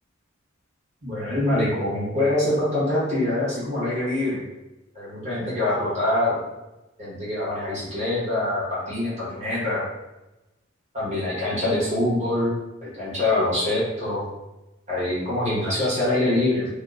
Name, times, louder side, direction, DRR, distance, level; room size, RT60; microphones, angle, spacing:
voice 1, 1.0-4.4 4.9-6.4 7.0-9.8 10.9-12.5 12.8-14.2 14.9-16.7, left 1 dB, 35° right, -9 dB, 1.2 m, -24 dB
2.8 x 2.1 x 3.5 m, 0.99 s
head